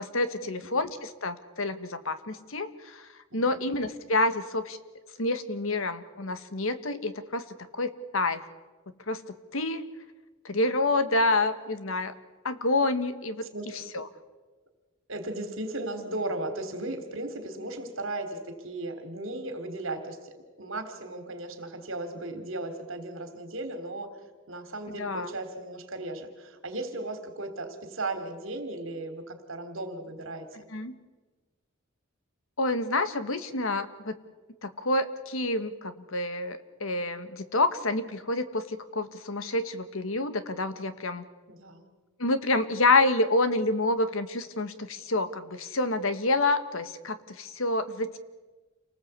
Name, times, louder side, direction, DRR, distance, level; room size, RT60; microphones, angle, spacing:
voice 1, 0.0-4.8 5.2-7.5 7.7-8.4 9.1-9.9 10.5-12.1 12.5-13.5 13.9-14.0 25.0-25.3 30.7-30.9 32.6-34.2 34.6-41.2 42.2-48.2, left 2 dB, 70° left, 11 dB, 1.6 m, -28 dB
voice 2, 3.3-3.6 13.5-13.9 15.1-18.4 18.6-24.1 24.5-30.5 41.5-41.9, right 2 dB, 65° right, 8 dB, 3.4 m, -36 dB
29.0 x 19.0 x 8.3 m, 1.3 s
head